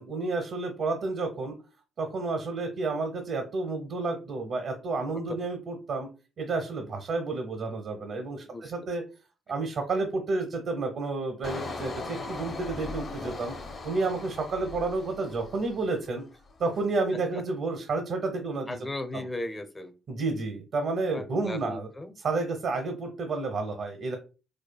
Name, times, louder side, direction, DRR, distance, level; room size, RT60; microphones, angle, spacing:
voice 1, 0.0-1.5 2.0-6.1 6.4-9.0 9.5-13.5 13.8-16.2 16.6-18.8 20.1-21.9 22.2-24.2, right 3 dB, 60° right, 5 dB, 0.8 m, -30 dB
voice 2, 8.4-8.7 18.7-19.9 21.1-22.2, left 1 dB, 15° left, 7 dB, 0.6 m, -36 dB
Engine, 11.4-16.1 16.5-16.8, left 3 dB, 50° left, 0.8 m, -39 dB
4.9 x 2.2 x 2.2 m, 0.32 s
cardioid pair, 90°, 0 cm